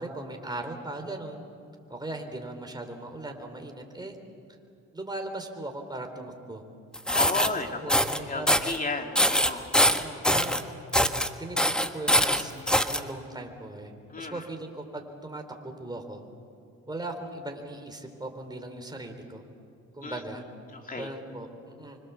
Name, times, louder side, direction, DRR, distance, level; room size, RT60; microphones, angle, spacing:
voice 1, 0.0-1.4 1.9-4.2 4.9-6.6 7.5-8.8 9.8-10.6 11.4-12.5 12.8-13.9 14.2-16.2 16.9-19.4 19.9-20.4 21.0-22.0, right 2 dB, 15° right, 4 dB, 4.0 m, -38 dB
sound 1, 6.9-7.5 7.9-8.2 8.5-8.8 9.2-10.6 10.9-11.3 11.6-13.0, equal, 5° left, 1.4 m, -23 dB
voice 2, 7.1-7.9 8.3-9.7 14.1-14.4 20.0-20.2 20.9-21.1, left 3 dB, 30° left, 3 dB, 3.0 m, -33 dB
26.0 x 25.0 x 7.2 m, 2.6 s
cardioid pair, 90°, 30 cm